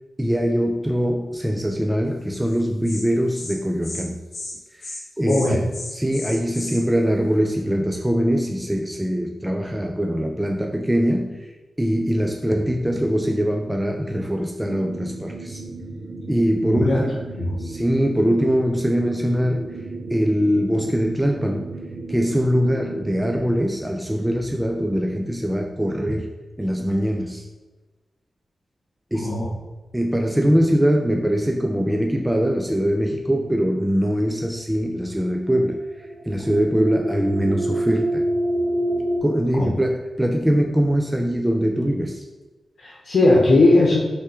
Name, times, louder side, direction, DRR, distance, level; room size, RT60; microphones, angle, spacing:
voice 1, 0.2-4.2 4.8-5.7 5.9-11.4 11.8-15.6 16.3-17.2 17.6-19.7 20.1-21.7 22.1-26.3 26.6-27.5 29.1-29.3 29.9-35.8 36.3-38.2 39.2-42.2, equal, 5° right, 2 dB, 0.3 m, -22 dB
Insect, 2.5-2.6 2.8-3.0 3.3-3.6 3.8-4.0 4.3-4.5 4.8-5.0 5.3-6.8, left 2 dB, 50° left, 1.3 m, -34 dB
voice 2, 5.3-5.6 16.6-17.0 17.3-17.6 29.1-29.5 39.5-39.7 42.8-44.0, left 2 dB, 65° left, -4 dB, 1.0 m, -18 dB
sound 1, 14.7-23.4, right 3 dB, 80° right, 0.8 m, -36 dB
sound 2, 35.3-39.2, right 1 dB, 45° right, 1.6 m, -26 dB
5.5 x 3.5 x 4.9 m, 1.2 s
wide cardioid pair, 180°, 0 cm